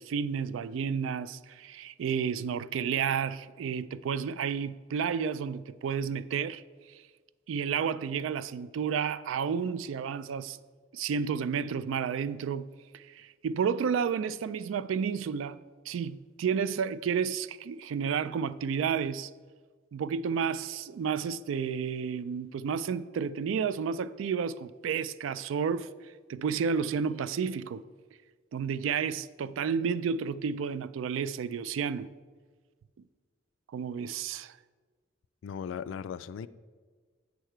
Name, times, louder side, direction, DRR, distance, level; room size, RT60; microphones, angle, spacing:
voice 1, 0.0-6.6 7.5-10.6 10.9-15.6 15.9-19.3 19.9-25.9 26.3-27.8 28.5-32.1 33.7-34.6, right 6 dB, 80° right, 0.3 m, -31 dB
voice 2, 35.4-36.5, left 7 dB, 70° left, 0.3 m, -37 dB
8.0 x 6.6 x 4.5 m
head